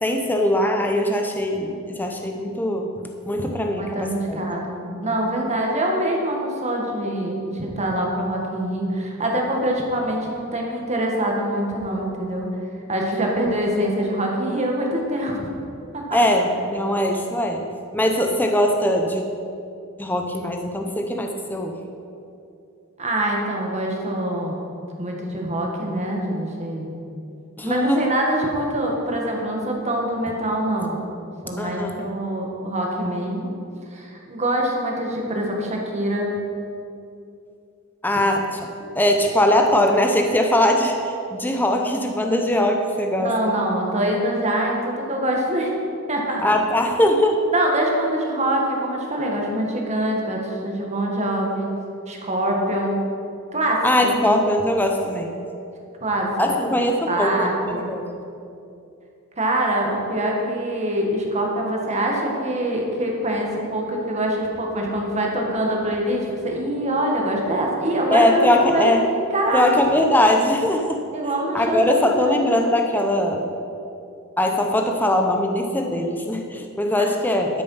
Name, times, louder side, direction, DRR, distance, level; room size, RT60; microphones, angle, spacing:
voice 1, 0.0-2.9 3.3-4.4 16.1-17.6 17.9-19.2 20.0-21.7 27.6-28.0 31.5-31.9 38.0-38.6 38.9-43.3 46.4-47.5 53.8-55.3 56.4-58.0 68.1-69.1 69.5-71.0 71.5-73.4 74.4-77.6, left 1 dB, 10° left, 3 dB, 0.6 m, -21 dB
voice 2, 3.7-12.5 12.9-15.4 15.9-16.0 23.0-24.6 25.0-26.9 27.6-31.0 31.4-33.5 33.9-36.3 38.1-38.3 43.2-45.7 46.1-46.4 47.5-51.7 52.1-53.0 53.5-54.4 56.0-56.3 57.1-57.9 59.4-68.9 69.3-69.8 71.1-71.8 72.2-72.5 77.0-77.1, right 1 dB, 30° right, 0 dB, 1.6 m, -24 dB
12.0 x 6.8 x 5.6 m, 2.6 s
head